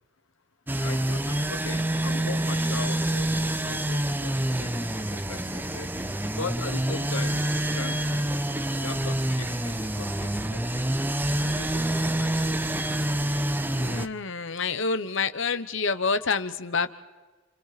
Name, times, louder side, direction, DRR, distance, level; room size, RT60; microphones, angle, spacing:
sound 1, 0.7-14.1, right 1 dB, 10° right, 0.7 m, -27 dB
voice 1, 0.8-5.9 6.4-8.2 8.8-10.7 11.5-12.7 13.3-13.5, left 4 dB, 75° left, 10 dB, 1.3 m, -40 dB
voice 2, 13.7-16.9, left 4 dB, 60° left, 11 dB, 1.1 m, -28 dB
29.5 x 29.0 x 4.2 m, 1.3 s
head